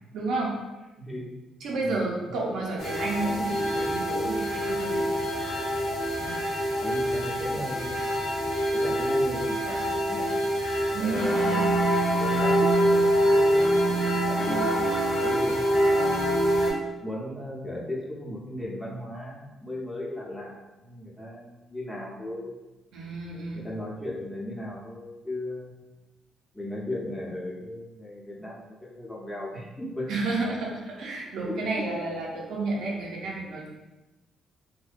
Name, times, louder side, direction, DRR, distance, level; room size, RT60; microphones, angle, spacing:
voice 1, 0.1-0.6 1.6-5.0 7.3-7.5 10.9-11.2 22.9-23.6 30.1-33.7, right 3 dB, 80° right, -3 dB, 0.6 m, -31 dB
voice 2, 1.0-1.3 1.6-2.0 2.2-2.3 6.2-6.3 6.8-8.1 8.7-10.3 10.9-11.9 12.2-14.9 15.2-15.6 15.9-16.4 17.0-22.6 23.5-25.8 26.5-30.2 31.5-31.7, left 1 dB, 10° left, -5 dB, 0.8 m, -36 dB
sound 1, 2.8-16.7, equal, 75° left, 0.9 m, -25 dB
2.6 x 2.1 x 2.5 m, 1.1 s
supercardioid pair, 65°, 0 cm